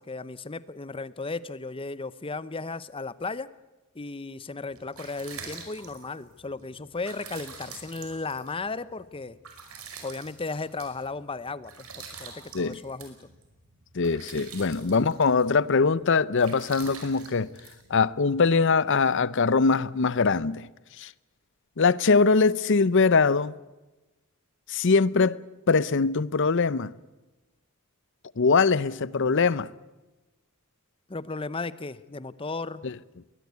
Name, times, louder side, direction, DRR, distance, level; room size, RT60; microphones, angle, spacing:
voice 1, 0.0-3.5 3.9-9.4 10.0-11.9 12.2-13.3 14.8-15.2 31.1-32.9, left 3 dB, 25° left, 0.7 m, -35 dB
sound 1, 4.7-18.5, right 5 dB, 80° right, 5.3 m, -46 dB
voice 2, 13.9-17.5 17.9-20.7 21.0-21.1 21.8-23.5 24.7-25.4 25.7-26.9 28.4-29.7 32.8-32.9, left 4 dB, 55° left, 0.7 m, -22 dB
21.5 x 20.0 x 8.2 m
head